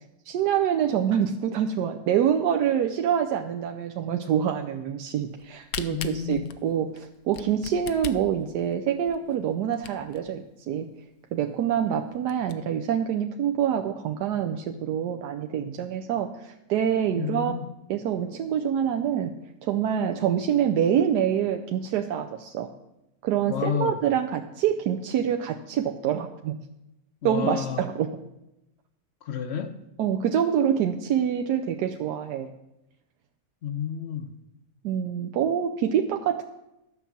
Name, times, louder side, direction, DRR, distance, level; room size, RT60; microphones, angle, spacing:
voice 1, 0.3-10.9 11.3-17.5 17.9-19.4 19.6-22.7 23.2-26.6 27.2-28.2 30.0-32.5 34.8-36.4, right 9 dB, 85° right, 1.2 m, -26 dB
Camera, 5.3-10.3 10.8-10.9 11.1-11.2 11.7-11.8 12.1-12.5, left 10 dB, 80° left, 1.2 m, -39 dB
voice 2, 5.9-6.6 17.2-17.7 23.5-24.0 27.2-27.9 29.2-29.8 33.6-34.4, left 8 dB, 55° left, 0.8 m, -30 dB
12.0 x 5.7 x 7.2 m
omnidirectional pair, 1.7 m